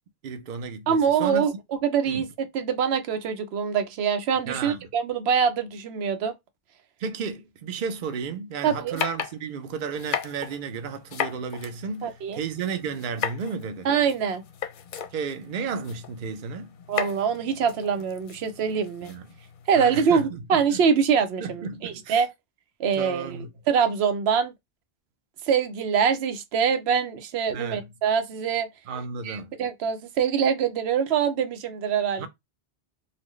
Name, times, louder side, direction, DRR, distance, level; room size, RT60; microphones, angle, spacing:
voice 1, 0.2-1.5 2.1-2.3 4.5-4.8 7.0-13.9 15.1-16.7 19.0-19.3 19.7-20.8 21.4-22.2 23.0-23.5 27.5-27.9 28.9-29.5 32.2-32.3, right 5 dB, 60° right, 0.7 m, -33 dB
voice 2, 0.9-1.5 1.8-6.3 8.6-9.0 12.0-12.4 13.8-14.4 16.9-19.1 19.7-22.3 22.8-24.5 25.5-28.7 29.2-32.3, right 7 dB, 85° right, 0.8 m, -24 dB
sound 1, 9.0-19.9, left 8 dB, 60° left, 0.6 m, -36 dB
4.1 x 2.2 x 3.0 m
omnidirectional pair, 1.1 m